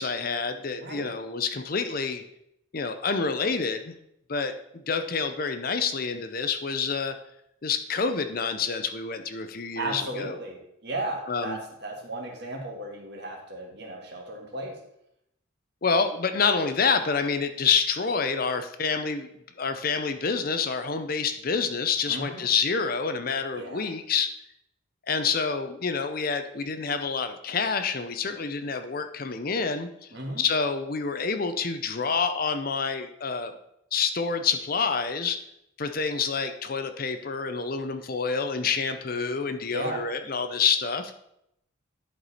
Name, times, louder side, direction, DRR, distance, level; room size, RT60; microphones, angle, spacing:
voice 1, 0.0-2.2 2.7-3.9 4.3-7.1 7.6-10.4 11.3-11.6 15.8-19.3 19.6-24.3 25.1-30.1 30.4-33.5 33.9-35.4 35.8-41.1, left 5 dB, 45° left, 8 dB, 0.6 m, -27 dB
voice 2, 0.8-1.1 9.7-14.8 22.1-22.5 23.5-23.9 30.1-30.4 39.7-40.0, right 1 dB, 55° right, 1 dB, 1.7 m, -35 dB
11.0 x 4.7 x 4.1 m, 0.77 s
head